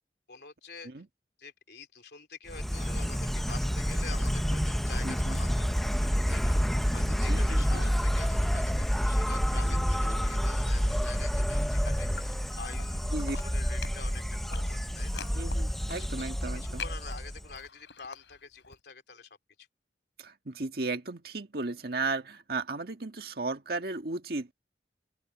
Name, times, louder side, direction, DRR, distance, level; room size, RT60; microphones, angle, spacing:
voice 1, 0.3-0.9 1.4-6.6 6.9-15.3 16.2-16.3 16.5-19.7, left 5 dB, 70° left, 3.2 m, -47 dB
Insect, 2.5-17.6, equal, ahead, 0.7 m, -29 dB
voice 2, 5.0-5.4 7.0-7.9 9.6-10.2 13.1-13.4 15.3-16.8 20.2-24.5, right 3 dB, 60° right, 1.8 m, -35 dB
sound 1, 11.3-12.9 13.1-18.8, left 6 dB, 85° left, 7.5 m, -46 dB
open air
head